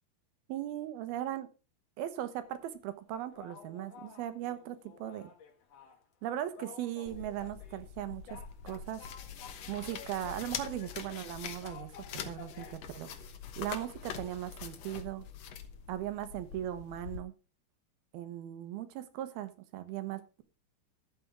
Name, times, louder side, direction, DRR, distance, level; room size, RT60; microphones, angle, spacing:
voice 1, 0.5-1.5 2.0-5.3 6.2-8.4 8.6-9.0 9.7-11.9 12.3-13.1 13.6-15.3 15.9-17.3 18.1-20.4, right 12 dB, 70° right, 11 dB, 2.8 m, -38 dB
sound 1, 2.4-2.8 3.3-6.0 6.2-6.3 6.5-7.8 8.3-12.8, left 6 dB, 55° left, 2.0 m, -52 dB
sound 2, 7.1-17.2, left 7 dB, 75° left, 1.5 m, -44 dB
13.0 x 8.4 x 3.6 m, 0.33 s
omnidirectional pair, 4.8 m